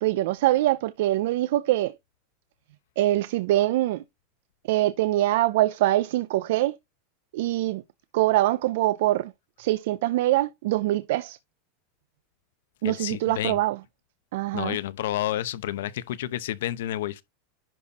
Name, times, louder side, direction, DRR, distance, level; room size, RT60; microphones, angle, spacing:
voice 1, 0.0-2.0 3.0-4.0 4.7-6.8 7.3-7.8 8.1-9.3 9.6-11.4 12.8-13.8 14.3-14.8, right 15 dB, 65° right, 0.5 m, -24 dB
voice 2, 12.8-13.6 14.5-17.2, left 13 dB, 80° left, 0.9 m, -30 dB
11.0 x 4.2 x 4.2 m
supercardioid pair, 160°, 0 cm